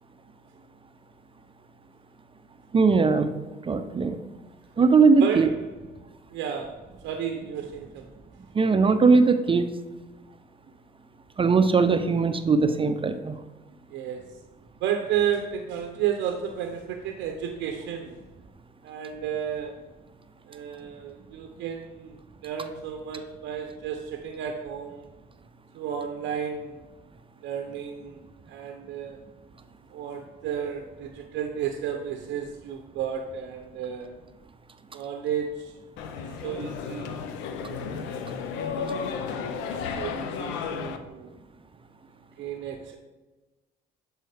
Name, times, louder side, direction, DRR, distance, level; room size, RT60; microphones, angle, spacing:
voice 1, 2.7-3.3 3.6-4.2 4.8-5.5 8.5-9.7 11.4-13.4, right 4 dB, 30° right, 9 dB, 0.5 m, -20 dB
voice 2, 5.2-5.6 6.3-8.1 13.9-14.3 14.8-18.2 18.8-19.8 20.5-25.1 25.7-26.8 27.4-28.2 28.5-29.2 29.9-34.2 34.9-35.8 36.2-37.2 37.7-38.2 39.3-41.4 42.4-43.0, right 8 dB, 70° right, 4 dB, 0.6 m, -32 dB
sound 1, 36.0-41.0, left 6 dB, 80° left, 0.6 m, -33 dB
7.6 x 4.6 x 3.3 m, 1.2 s
supercardioid pair, 65°, 19 cm